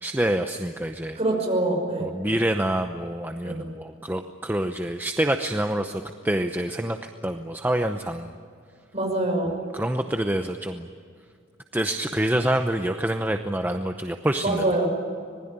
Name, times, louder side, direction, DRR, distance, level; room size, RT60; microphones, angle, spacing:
voice 1, 0.0-1.2 2.0-7.0 7.2-8.3 9.4-10.9 11.7-14.8, right 1 dB, 10° right, 6 dB, 0.8 m, -27 dB
voice 2, 1.2-2.1 3.4-3.6 8.9-9.5 14.4-14.9, right 2 dB, 35° right, 2 dB, 5.8 m, -24 dB
26.0 x 20.5 x 8.9 m, 2.3 s
head